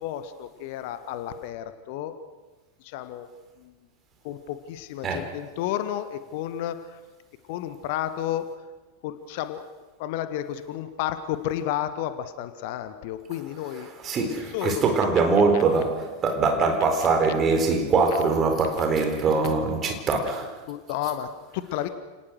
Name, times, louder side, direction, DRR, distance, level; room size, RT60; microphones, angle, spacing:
voice 1, 0.0-2.2 2.8-3.3 3.6-3.8 4.2-7.0 7.5-8.7 9.0-9.6 10.0-13.9 14.1-14.9 15.5-15.6 19.4-20.0 20.7-21.9, left 11 dB, 50° left, 11 dB, 1.4 m, -32 dB
voice 2, 14.0-20.6, right 4 dB, 25° right, 5 dB, 4.3 m, -23 dB
29.5 x 19.0 x 6.4 m, 1.2 s
figure-of-eight pair, 90°, 0 cm